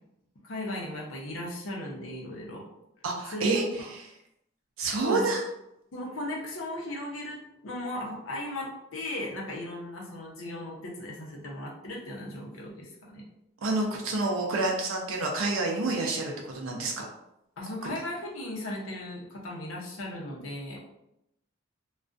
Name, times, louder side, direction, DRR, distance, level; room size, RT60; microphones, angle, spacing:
voice 1, 0.4-2.6 3.3-3.8 5.0-5.2 5.9-7.4 7.6-13.2 17.6-20.8, left 1 dB, 90° left, -2 dB, 0.7 m, -37 dB
voice 2, 3.0-4.1 4.8-5.4 13.6-17.1, right 2 dB, 90° right, 0 dB, 0.5 m, -28 dB
2.4 x 2.2 x 2.4 m, 0.82 s
head